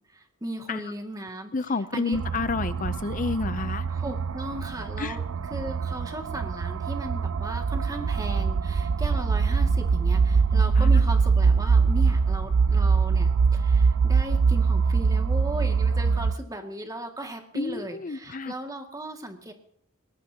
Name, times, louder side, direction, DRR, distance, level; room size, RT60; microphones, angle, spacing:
voice 1, 0.1-1.5 1.9-2.2 3.9-5.2 5.5-19.5, right 1 dB, 15° right, 4 dB, 2.2 m, -36 dB
voice 2, 1.5-3.9 5.0-5.2 10.8-10.9 17.5-18.5, left 4 dB, 40° left, 13 dB, 0.6 m, -30 dB
sound 1, 2.1-16.4, right 5 dB, 75° right, 0.5 m, -23 dB
23.0 x 18.5 x 2.9 m, 0.70 s
head